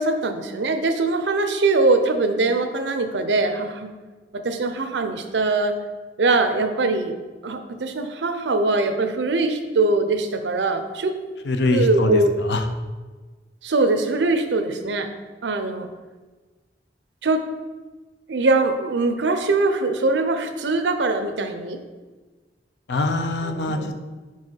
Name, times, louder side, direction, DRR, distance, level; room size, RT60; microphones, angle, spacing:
voice 1, 0.0-3.9 4.3-5.8 6.2-7.2 7.4-11.1 11.7-12.3 13.6-15.1 15.4-15.9 17.2-17.4 18.3-21.8 23.5-23.9, right 3 dB, 85° right, 8 dB, 0.6 m, -22 dB
voice 2, 11.4-12.6 22.9-24.0, left 2 dB, 75° left, 7 dB, 0.6 m, -23 dB
5.3 x 4.7 x 4.6 m, 1.3 s
head